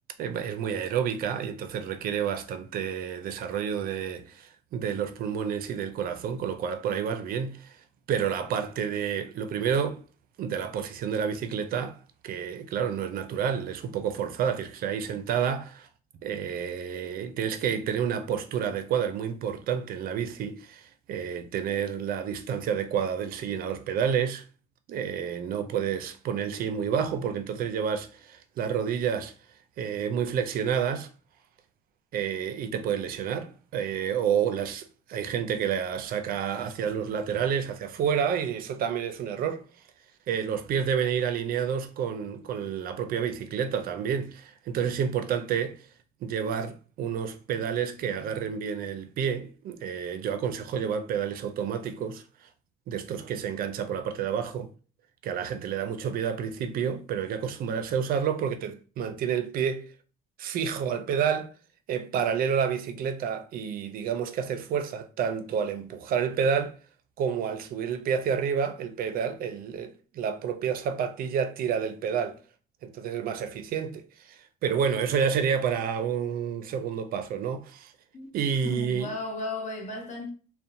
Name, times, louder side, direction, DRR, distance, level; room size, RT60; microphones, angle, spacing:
voice 1, 0.2-7.8 8.1-10.0 10.4-12.0 12.2-15.9 16.2-24.4 24.9-29.3 29.8-31.1 32.1-39.6 40.3-45.9 46.2-52.5 52.9-54.7 55.2-59.9 60.4-61.5 61.9-66.8 67.2-72.4 72.8-77.9 78.3-79.1, right 7 dB, 60° right, 0.4 m, -29 dB
voice 2, 78.6-80.3, left 2 dB, 45° left, 0.8 m, -35 dB
2.6 x 2.1 x 2.6 m
cardioid pair, 110°, 17 cm